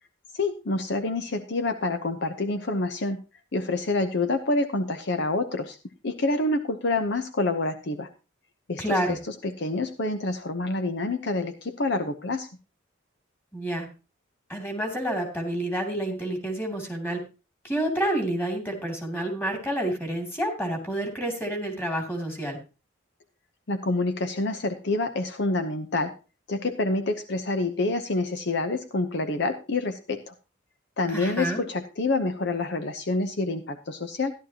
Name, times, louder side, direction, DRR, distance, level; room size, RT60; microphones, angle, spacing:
voice 1, 0.3-3.2 3.5-5.8 6.0-8.1 8.7-12.5 23.7-26.1 26.5-30.3 31.0-34.3, left 2 dB, 60° left, 9 dB, 0.8 m, -27 dB
voice 2, 8.8-9.2 13.5-13.9 14.5-17.2 17.6-22.6 31.1-31.6, right 1 dB, 10° left, 3 dB, 2.8 m, -29 dB
14.0 x 11.5 x 2.9 m, 0.30 s
head